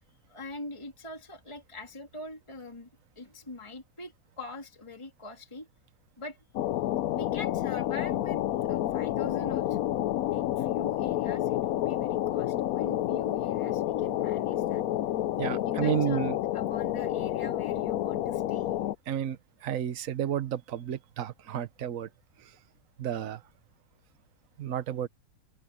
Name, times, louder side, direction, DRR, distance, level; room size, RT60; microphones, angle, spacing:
voice 1, 0.3-2.9 3.2-5.7 6.2-6.4 7.1-9.9 10.3-14.8 15.5-18.7 23.2-23.3, left 2 dB, 15° left, 3.0 m, -43 dB
sound 1, 6.5-18.9, left 13 dB, 75° left, 0.8 m, -29 dB
voice 2, 15.4-16.4 19.1-22.1 22.4-22.5 23.0-23.4 24.6-25.1, right 10 dB, 50° right, 1.3 m, -31 dB
open air
omnidirectional pair, 2.1 m